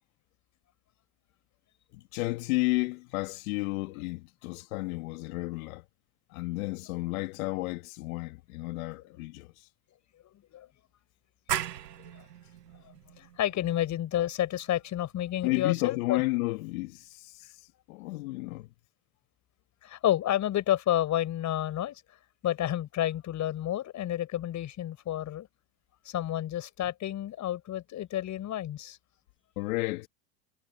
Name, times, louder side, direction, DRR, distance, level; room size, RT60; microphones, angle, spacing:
voice 1, 1.9-5.9 6.3-9.7 15.4-17.5 17.9-18.7 29.6-30.1, left 22 dB, 65° left, 2.2 m, -32 dB
sound 1, 11.5-16.9, right 11 dB, 85° right, 1.8 m, -39 dB
voice 2, 13.2-16.2 19.8-22.0 22.4-25.5 26.1-29.0, left 12 dB, 35° left, 6.9 m, -30 dB
hypercardioid pair, 100°, 47 cm